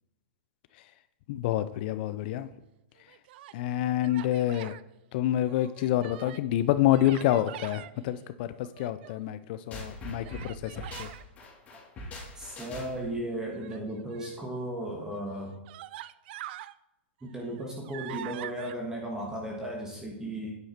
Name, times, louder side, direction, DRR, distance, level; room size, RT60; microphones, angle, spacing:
voice 1, 1.3-2.5 3.5-4.8 5.1-10.7 11.0-11.1, left 13 dB, 50° left, 12 dB, 0.5 m, -27 dB
Human voice, 3.0-3.6 4.0-4.8 5.3-6.5 6.9-7.9 8.5-9.3 10.2-11.2 13.5-14.4 15.1-15.2 15.7-16.7 17.2-18.7, right 14 dB, 55° right, 0.4 m, -44 dB
sound 1, 9.7-13.2, left 1 dB, 25° left, 2.8 m, -42 dB
voice 2, 12.4-15.6 17.2-20.5, right 1 dB, 10° right, -1 dB, 1.6 m, -35 dB
9.4 x 6.5 x 4.4 m, 0.93 s
hypercardioid pair, 135°, 6 cm